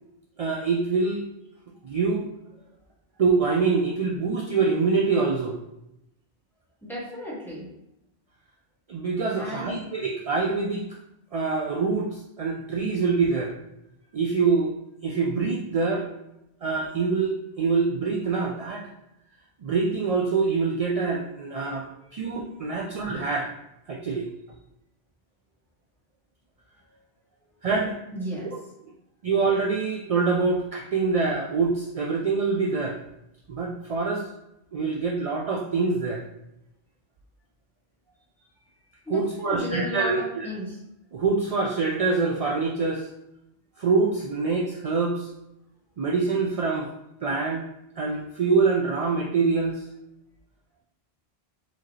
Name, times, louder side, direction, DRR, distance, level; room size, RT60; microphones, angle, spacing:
voice 1, 0.4-1.2 1.8-2.3 3.2-5.6 8.9-10.9 11.3-13.5 14.1-14.7 15.0-16.1 16.6-18.9 19.6-23.5 23.9-24.3 27.6-27.9 29.2-33.0 33.5-34.3 34.7-36.2 39.1-40.5 41.1-43.1 43.8-45.3 46.0-46.9 47.2-47.7 48.0-49.9, right 4 dB, 55° right, -1 dB, 0.4 m, -25 dB
voice 2, 6.8-7.7 9.3-9.9 21.9-22.6 28.1-28.5 39.0-40.8, left 1 dB, ahead, -7 dB, 1.2 m, -34 dB
4.7 x 2.9 x 3.1 m, 0.84 s
omnidirectional pair, 1.1 m